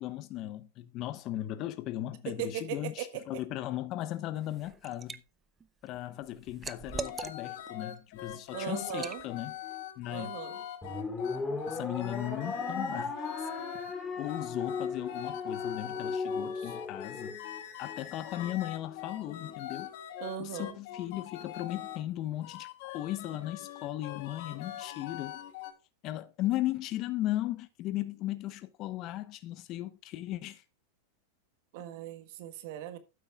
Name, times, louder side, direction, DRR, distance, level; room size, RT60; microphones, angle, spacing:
voice 1, 0.0-5.2 5.8-9.5 10.0-10.4 11.7-13.5 14.2-17.4 17.8-19.9 20.4-25.4 26.0-30.6, left 14 dB, 45° left, 1.0 m, -37 dB
voice 2, 2.2-3.2 8.5-9.2 10.1-10.6 16.6-16.8 20.2-20.8 31.7-33.0, right 10 dB, 60° right, 1.6 m, -38 dB
Liquid, 4.4-5.2 5.6-7.7 8.1-8.3 8.9-9.2, right 5 dB, 20° right, 0.7 m, -41 dB
sound 1, 6.8-22.0 22.4-25.7, left 11 dB, 65° left, 2.0 m, -43 dB
sound 2, 10.8-17.3, left 4 dB, 10° left, 3.0 m, -36 dB
12.5 x 9.0 x 2.3 m
hypercardioid pair, 115°, 0 cm